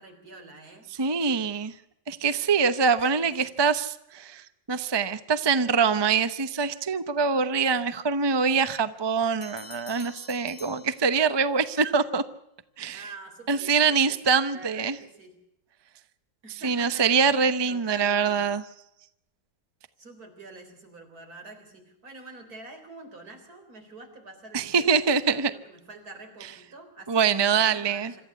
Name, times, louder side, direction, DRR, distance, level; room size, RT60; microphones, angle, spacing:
voice 1, 0.0-0.9 3.1-3.6 12.9-14.2 14.5-15.3 16.4-18.5 20.0-28.2, right 2 dB, 50° right, 4 dB, 4.4 m, -46 dB
voice 2, 1.0-1.7 2.1-12.2 12.8-13.0 13.5-15.0 16.6-18.6 24.5-25.5 27.1-28.1, right 5 dB, 35° right, 11 dB, 0.4 m, -24 dB
Bell, 9.4-11.6, left 5 dB, 70° left, 2.4 m, -47 dB
26.0 x 14.0 x 8.4 m, 0.81 s
omnidirectional pair, 2.0 m